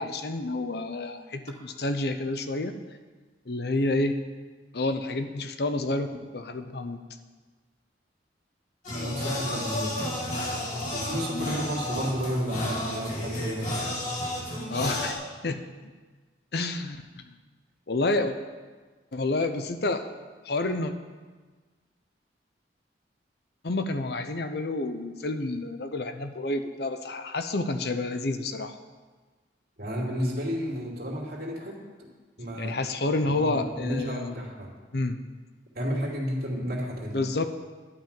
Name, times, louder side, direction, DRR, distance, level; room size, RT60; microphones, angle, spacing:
voice 1, 0.0-2.8 3.5-4.2 4.7-7.0 11.3-11.6 14.7-15.6 16.5-17.3 17.9-18.4 19.1-20.0 20.4-20.9 23.6-28.8 32.6-34.3 34.9-35.2 37.1-37.4, left 2 dB, 65° left, 8 dB, 0.8 m, -29 dB
sound 1, 8.8-15.1, left 1 dB, 45° left, 2.4 m, -32 dB
voice 2, 9.0-9.9 10.9-13.8 29.8-32.1 32.4-32.8 33.2-34.7 35.7-37.2, equal, 60° right, -2 dB, 2.8 m, -32 dB
11.5 x 5.9 x 8.8 m, 1.4 s
head